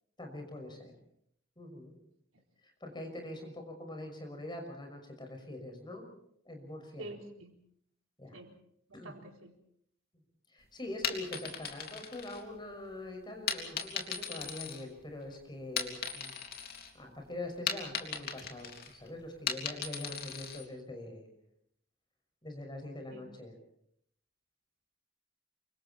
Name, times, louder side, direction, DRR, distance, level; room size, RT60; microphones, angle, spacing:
voice 1, 0.2-0.9 1.6-1.9 2.6-6.0 6.4-7.1 8.2-8.4 8.9-9.1 10.5-16.4 16.7-21.3 22.4-23.5, left 1 dB, 20° left, 3 dB, 6.1 m, -44 dB
voice 2, 7.0-7.5 8.3-8.5 8.9-9.5 23.1-23.3, right 1 dB, 80° right, 2 dB, 4.0 m, -47 dB
sound 1, 10.9-12.8 13.5-15.3 15.6-16.9 17.2-20.7, left 6 dB, 50° left, 3.0 m, -38 dB
28.5 x 25.0 x 4.5 m, 0.70 s
head